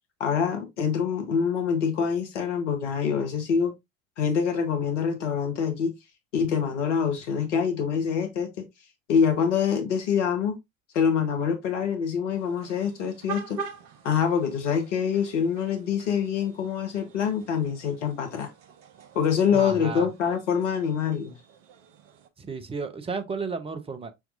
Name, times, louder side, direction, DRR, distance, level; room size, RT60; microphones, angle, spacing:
voice 1, 0.2-3.7 4.2-5.9 6.3-8.6 9.1-10.6 10.9-13.6 14.0-18.5 19.1-21.3, left 7 dB, 65° left, 1.2 m, -25 dB
sound 1, 12.3-22.3, right 4 dB, 50° right, 0.9 m, -44 dB
voice 2, 19.5-20.1 22.4-24.1, right 4 dB, 15° right, 0.7 m, -33 dB
5.8 x 3.5 x 2.5 m
figure-of-eight pair, 65°, 38 cm